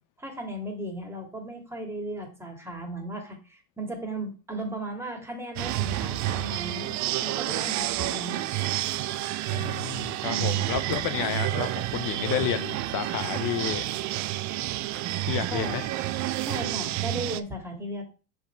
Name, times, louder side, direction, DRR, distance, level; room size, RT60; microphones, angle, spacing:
voice 1, 0.2-8.4 10.3-10.7 15.5-15.8 16.4-18.0, right 1 dB, 5° right, 2.1 m, -36 dB
sound 1, 5.6-17.4, right 15 dB, 45° right, 0.5 m, -29 dB
voice 2, 9.5-13.8 15.2-15.9, left 10 dB, 50° left, 0.6 m, -31 dB
5.9 x 4.3 x 4.4 m
supercardioid pair, 110°, 42 cm